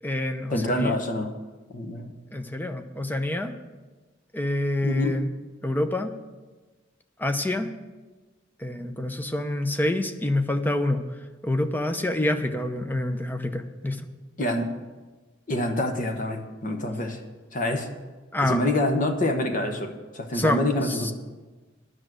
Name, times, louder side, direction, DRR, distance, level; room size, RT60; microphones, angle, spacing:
voice 1, 0.0-0.9 2.3-3.5 4.3-5.3 5.6-6.1 7.2-7.7 8.6-11.0 11.4-14.1 18.3-18.6 20.3-21.1, left 1 dB, 10° left, 7 dB, 0.7 m, -27 dB
voice 2, 0.5-1.3 1.7-2.1 4.8-5.2 14.4-14.7 15.5-17.2 17.5-17.9 18.4-21.1, left 1 dB, 45° left, 5 dB, 1.1 m, -26 dB
10.5 x 6.3 x 7.6 m, 1.2 s
head